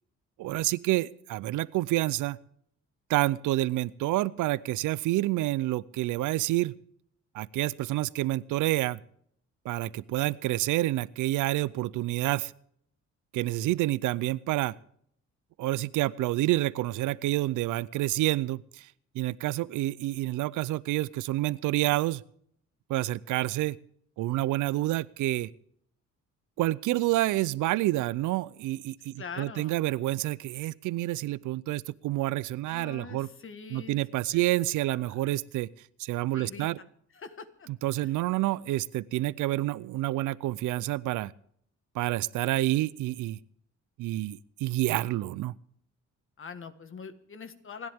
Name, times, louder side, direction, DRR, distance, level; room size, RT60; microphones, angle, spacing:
voice 1, 0.4-2.4 3.1-6.7 7.3-9.0 9.6-12.5 13.3-14.7 15.6-18.9 19.1-22.2 22.9-23.8 24.2-25.5 26.6-33.3 33.7-35.7 36.0-36.8 37.8-41.3 41.9-43.4 44.0-45.5, right 16 dB, 85° right, 20 dB, 0.6 m, -28 dB
voice 2, 29.2-29.8 32.7-34.0 34.3-34.4 35.2-35.4 36.3-36.9 37.1-37.7 38.0-38.1 46.4-47.9, left 5 dB, 45° left, 10 dB, 1.6 m, -43 dB
28.0 x 10.5 x 3.6 m, 0.67 s
cardioid pair, 90°, 30 cm